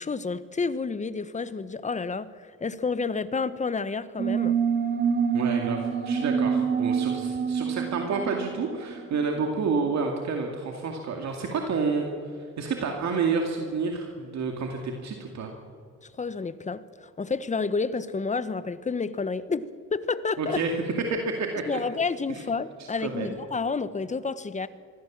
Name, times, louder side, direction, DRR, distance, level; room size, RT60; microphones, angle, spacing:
voice 1, 0.0-4.6 16.0-20.6 21.6-24.7, left 4 dB, 25° left, 14 dB, 1.0 m, -30 dB
sound 1, 4.2-9.4, right 7 dB, 35° right, 2.5 m, -26 dB
voice 2, 5.3-12.1 12.6-15.5 20.4-20.7 21.4-21.8 23.0-23.3, right 4 dB, 65° right, 2 dB, 2.4 m, -29 dB
24.0 x 15.5 x 7.4 m, 2.1 s
cardioid pair, 90°, 30 cm